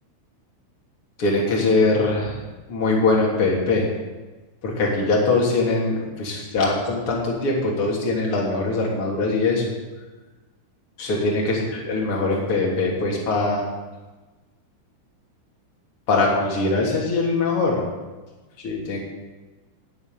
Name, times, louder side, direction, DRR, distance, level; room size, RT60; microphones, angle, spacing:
voice 1, 1.2-2.4 2.7-3.9 4.6-9.6 11.0-13.6 16.1-17.8 18.6-19.0, left 3 dB, 35° left, -3 dB, 3.2 m, -22 dB
10.5 x 10.0 x 9.3 m, 1.2 s
omnidirectional pair, 5.6 m